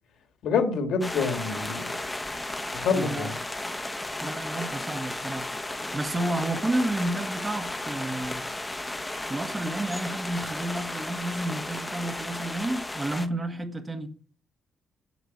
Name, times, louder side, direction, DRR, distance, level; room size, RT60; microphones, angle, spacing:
voice 1, 0.4-1.9 2.7-3.3, left 5 dB, 75° left, 2.2 m, -26 dB
sound 1, 1.0-13.3, left 2 dB, 15° left, 1.2 m, -34 dB
voice 2, 2.9-3.3 4.2-8.4 9.3-14.1, right 1 dB, 20° right, 1.7 m, -31 dB
8.1 x 7.4 x 8.1 m
cardioid pair, 90°, 0 cm